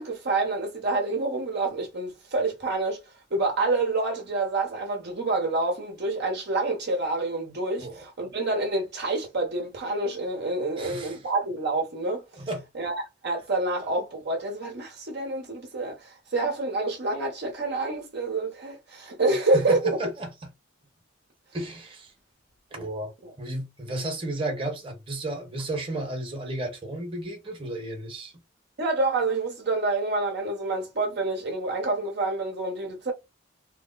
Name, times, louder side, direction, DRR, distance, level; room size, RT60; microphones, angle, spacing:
voice 1, 0.0-3.0 3.3-12.2 12.7-20.0 23.2-23.3 28.8-33.1, right 2 dB, 55° right, 1.0 m, -27 dB
voice 2, 10.8-11.2 12.3-12.6 19.4-20.3 21.5-22.1 22.7-23.1 23.4-28.3, right 1 dB, 25° right, 1.1 m, -33 dB
3.1 x 2.0 x 3.8 m
head